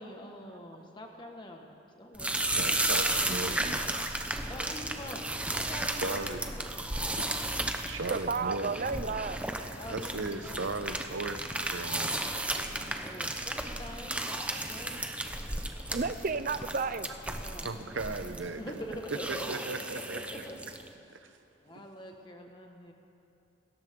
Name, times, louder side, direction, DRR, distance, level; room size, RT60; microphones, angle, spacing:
voice 1, 0.0-1.7 2.0-2.4 4.5-6.6 9.8-10.7 12.5-15.0 15.3-15.5 17.4-17.7 18.6-20.6 21.6-22.9, equal, 25° left, 2 dB, 1.6 m, -44 dB
sound 1, 2.1-20.9, right 1 dB, 5° right, 0.7 m, -34 dB
voice 2, 2.6-4.0 6.0-6.4 7.0-7.5 7.8-8.7 9.9-12.2 17.6-18.6 19.3-20.2 21.1-21.3, right 3 dB, 75° right, 9 dB, 0.9 m, -37 dB
voice 3, 8.1-9.4 15.9-17.1, right 4 dB, 45° right, 12 dB, 0.6 m, -32 dB
27.5 x 14.0 x 3.8 m, 2.9 s
head